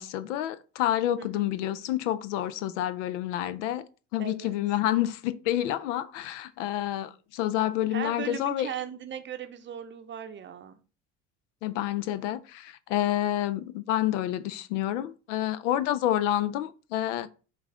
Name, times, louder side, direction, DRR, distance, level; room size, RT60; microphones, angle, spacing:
voice 1, 0.0-3.8 4.1-8.7 11.6-17.3, left 12 dB, 90° left, 0.5 m, -28 dB
voice 2, 1.2-1.5 4.2-4.6 7.9-10.8, right 8 dB, 30° right, 0.6 m, -38 dB
5.2 x 2.5 x 3.6 m
supercardioid pair, 85°, 35 cm